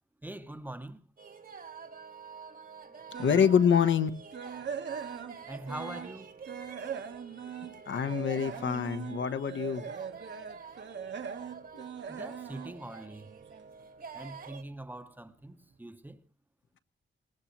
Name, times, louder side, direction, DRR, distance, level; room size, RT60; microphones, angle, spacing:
voice 1, 0.2-1.0 5.5-6.3 12.1-13.3 14.1-16.2, right 1 dB, 10° right, 0.9 m, -43 dB
sound 1, 1.2-14.6, right 5 dB, 45° right, 1.5 m, -47 dB
sound 2, 3.1-3.6 4.0-6.2 6.5-13.7 14.0-14.3 14.8-14.9 15.3-15.4, right 7 dB, 65° right, 1.4 m, -41 dB
voice 2, 3.2-4.1 7.9-9.8 11.7-11.8, left 7 dB, 75° left, 1.3 m, -26 dB
21.0 x 19.0 x 3.1 m
wide cardioid pair, 165°, 20 cm